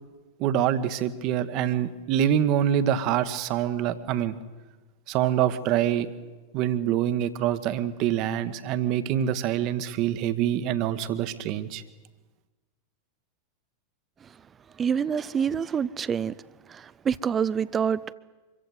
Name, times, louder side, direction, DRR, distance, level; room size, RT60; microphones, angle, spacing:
voice 1, 0.4-4.4 5.1-6.1 6.5-11.8, right 10 dB, 40° right, 1.3 m, -25 dB
voice 2, 14.8-16.3 16.7-18.1, right 7 dB, 20° right, 0.7 m, -26 dB
25.0 x 15.0 x 9.3 m
figure-of-eight pair, 90°, 0 cm